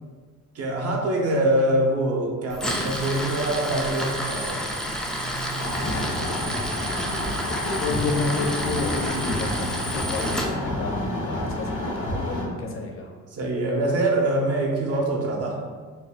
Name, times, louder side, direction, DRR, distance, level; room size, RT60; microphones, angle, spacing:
voice 1, 0.5-4.7 13.3-15.6, right 1 dB, 55° right, 0 dB, 0.7 m, -24 dB
Tools, 2.5-10.5, equal, ahead, 0.3 m, -30 dB
sound 1, 5.6-12.4, left 1 dB, 90° left, 0.8 m, -30 dB
voice 2, 5.7-13.1, left 3 dB, 45° left, 1 dB, 0.6 m, -31 dB
2.6 x 2.2 x 3.4 m, 1.5 s
cardioid pair, 90°, 30 cm